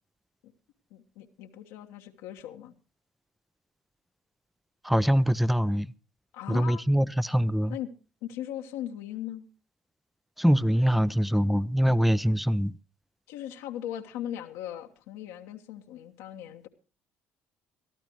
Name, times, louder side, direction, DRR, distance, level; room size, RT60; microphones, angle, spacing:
voice 1, 0.9-2.7 6.3-6.8 7.7-7.9 8.2-9.5 13.3-16.7, left 11 dB, 80° left, 1.3 m, -38 dB
voice 2, 4.8-5.9 6.5-7.8 10.4-12.8, equal, ahead, 0.6 m, -24 dB
22.5 x 13.0 x 3.1 m
supercardioid pair, 70°, 5 cm